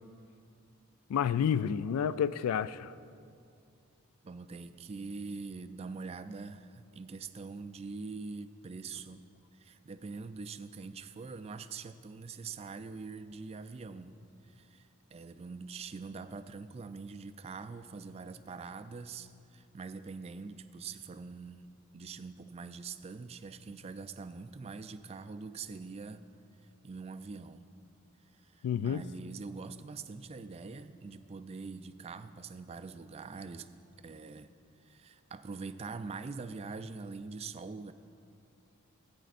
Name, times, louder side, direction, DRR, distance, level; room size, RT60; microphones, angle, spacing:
voice 1, 1.1-2.9 28.6-29.0, left 8 dB, 90° left, 0.3 m, -30 dB
voice 2, 4.2-9.3 9.5-14.2 14.4-26.2 26.8-27.7 28.4-33.7 34.0-34.5 34.8-37.9, right 4 dB, 30° right, 0.3 m, -44 dB
18.0 x 9.0 x 2.5 m
head